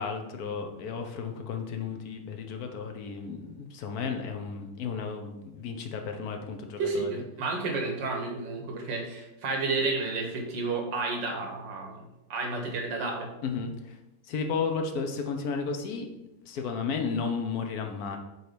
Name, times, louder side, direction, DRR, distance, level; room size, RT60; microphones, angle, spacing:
voice 1, 0.0-7.2 13.4-14.0 14.2-16.1 16.5-18.2, left 5 dB, 65° left, 5 dB, 1.2 m, -33 dB
voice 2, 6.8-13.3, right 3 dB, 85° right, 2 dB, 1.9 m, -31 dB
7.9 x 3.1 x 5.0 m, 0.94 s
omnidirectional pair, 1.9 m